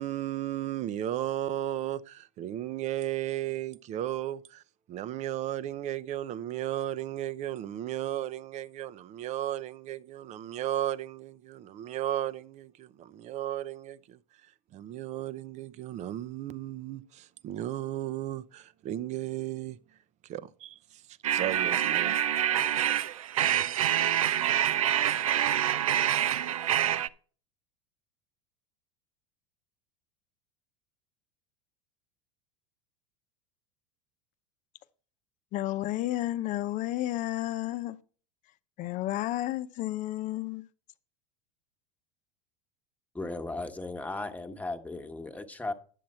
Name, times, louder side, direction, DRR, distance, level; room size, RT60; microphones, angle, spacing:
voice 1, 0.0-4.6 4.9-14.2 14.7-19.8 20.3-21.0 21.3-22.2, right 13 dB, 40° right, 0.7 m, -34 dB
sound 1, 21.2-27.1, right 11 dB, 85° right, 0.5 m, -26 dB
voice 2, 35.5-38.0 38.8-40.7, left 15 dB, 45° left, 0.8 m, -31 dB
voice 3, 43.1-45.7, left 2 dB, 10° left, 1.3 m, -36 dB
11.0 x 7.5 x 4.3 m
hypercardioid pair, 90°, 17 cm